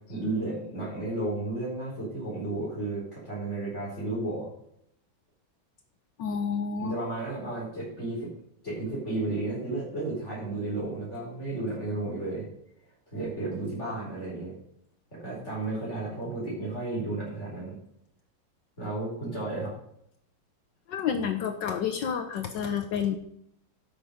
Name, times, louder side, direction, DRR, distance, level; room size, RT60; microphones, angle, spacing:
voice 1, 0.1-4.5 6.8-8.3 8.6-12.5 13.1-14.5 15.1-17.7 18.8-19.7, right 2 dB, 35° left, -7 dB, 4.8 m, -33 dB
voice 2, 6.2-6.9 20.9-23.2, left 7 dB, 65° left, 7 dB, 1.4 m, -29 dB
13.0 x 6.0 x 5.0 m, 0.72 s
omnidirectional pair, 2.2 m